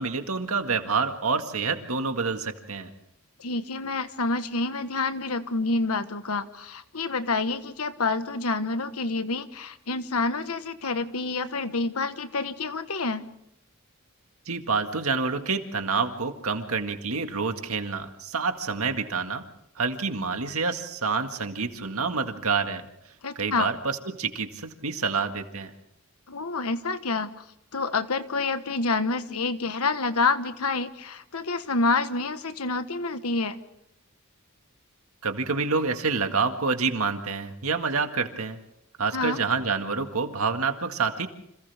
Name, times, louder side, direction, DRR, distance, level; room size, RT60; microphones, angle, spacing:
voice 1, 0.0-2.9 14.5-19.4 19.8-22.9 23.4-25.7 35.2-38.6 39.0-41.3, right 4 dB, 75° right, 6 dB, 1.9 m, -27 dB
voice 2, 3.4-13.3 23.2-23.7 26.3-27.4 27.7-33.6 39.1-39.4, left 3 dB, 85° left, 10 dB, 1.4 m, -28 dB
29.5 x 26.5 x 3.6 m, 0.78 s
head